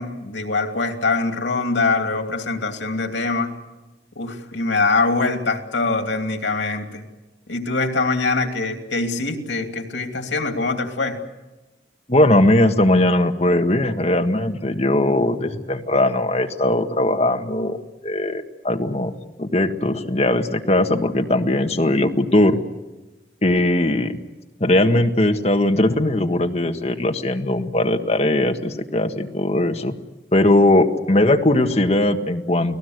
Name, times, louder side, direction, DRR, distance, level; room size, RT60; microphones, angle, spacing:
voice 1, 0.0-3.5 4.2-7.0 7.5-11.2, left 3 dB, 90° left, 5 dB, 2.8 m, -23 dB
voice 2, 12.1-17.8 18.0-19.1 19.4-22.6 23.4-24.2 24.6-29.9 30.3-32.8, left 1 dB, 35° left, 5 dB, 1.6 m, -19 dB
30.0 x 19.0 x 8.0 m, 1.1 s
head